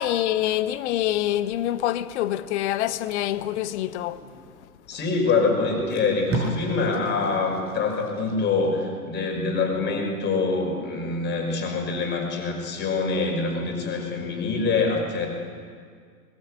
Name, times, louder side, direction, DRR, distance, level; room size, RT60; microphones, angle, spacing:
voice 1, 0.0-4.2, left 13 dB, 45° left, 1.2 m, -26 dB
Packing tape duct tape, 3.0-4.6 5.3-5.4 5.7-8.7 9.1-9.3, right 2 dB, 25° right, 6.5 m, -35 dB
voice 2, 4.9-15.3, left 4 dB, 20° left, 5.6 m, -25 dB
22.0 x 21.5 x 8.5 m
figure-of-eight pair, 110°, 47 cm